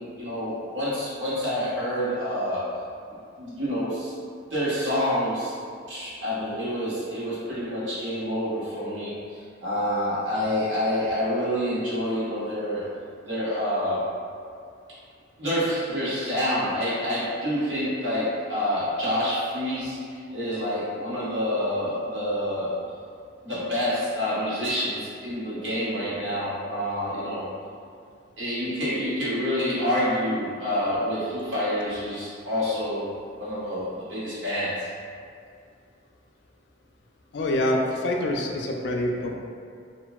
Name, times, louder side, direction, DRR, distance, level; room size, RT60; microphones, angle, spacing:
voice 1, 0.0-2.7 3.4-4.1 4.5-5.6 5.9-12.8 13.2-14.1 15.4-22.7 23.4-27.5 28.4-34.9, equal, 75° right, -10 dB, 1.1 m, -27 dB
voice 2, 37.3-39.3, left 1 dB, 65° left, 0 dB, 0.3 m, -26 dB
2.9 x 2.6 x 2.2 m, 2.3 s
head